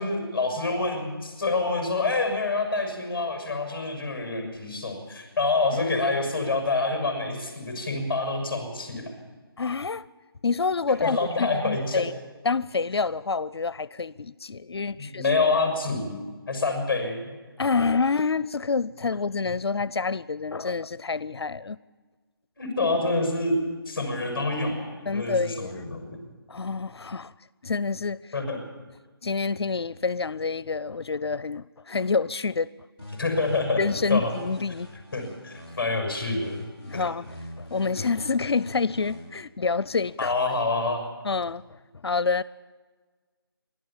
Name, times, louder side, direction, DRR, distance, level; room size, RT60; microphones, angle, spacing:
voice 1, 0.0-9.0 11.0-12.0 15.0-16.2 16.5-17.3 17.8-17.9 22.6-23.6 23.9-26.2 28.3-28.6 33.2-33.8 34.1-34.3 35.1-36.6 36.9-37.0 40.2-41.1, left 3 dB, 10° left, 0 dB, 5.8 m, -27 dB
voice 2, 9.6-10.0 10.4-12.1 12.4-15.2 17.6-21.8 25.1-25.7 26.5-27.3 27.6-28.3 29.2-32.7 33.8-34.9 36.9-40.3 41.2-41.6 42.0-42.4, left 4 dB, 85° left, 19 dB, 0.5 m, -27 dB
sound 1, 33.0-36.0 36.4-39.4, left 1 dB, 20° right, 2.9 m, -44 dB
30.0 x 12.0 x 7.3 m, 1.4 s
figure-of-eight pair, 175°, 13 cm